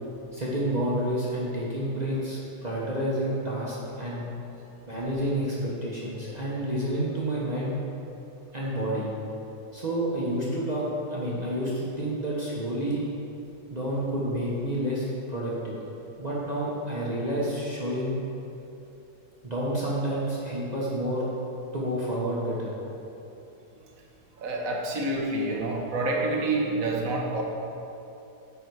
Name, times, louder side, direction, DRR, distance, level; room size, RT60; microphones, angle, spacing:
voice 1, 0.3-4.3 4.9-7.7 8.5-9.1 9.7-13.1 13.7-15.8 16.2-18.2 19.4-21.3 21.7-22.7, right 1 dB, 30° right, -7 dB, 1.0 m, -29 dB
voice 2, 24.4-27.4, right 2 dB, 65° right, 0 dB, 1.3 m, -27 dB
9.7 x 4.0 x 4.7 m, 2.9 s
omnidirectional pair, 1.7 m